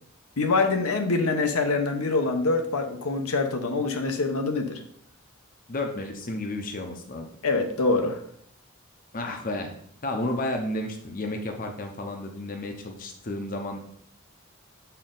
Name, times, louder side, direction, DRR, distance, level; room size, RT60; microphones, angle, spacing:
voice 1, 0.4-4.8 7.4-8.2, left 3 dB, 80° left, 5 dB, 0.9 m, -25 dB
voice 2, 5.7-7.3 9.1-9.7 10.0-13.8, left 1 dB, 40° left, 3 dB, 0.7 m, -32 dB
7.3 x 4.5 x 3.8 m, 0.63 s
head